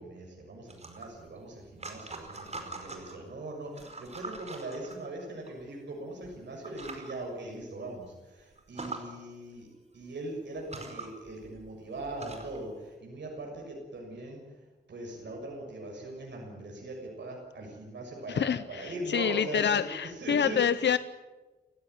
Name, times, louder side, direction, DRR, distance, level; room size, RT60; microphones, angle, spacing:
voice 1, 0.0-9.7 9.9-14.4 14.9-20.8, right 2 dB, 85° right, 0 dB, 6.7 m, -40 dB
sound 1, 0.7-3.2 3.7-5.5 6.2-6.4 6.6-7.1 7.6-7.7 8.0-8.1 8.6-9.0 10.0-10.1 10.6-12.6, right 3 dB, 40° right, 4.8 m, -43 dB
voice 2, 18.3-21.0, left 8 dB, 80° left, 13 dB, 0.7 m, -27 dB
29.0 x 16.0 x 9.6 m, 1.2 s
wide cardioid pair, 115°, 18 cm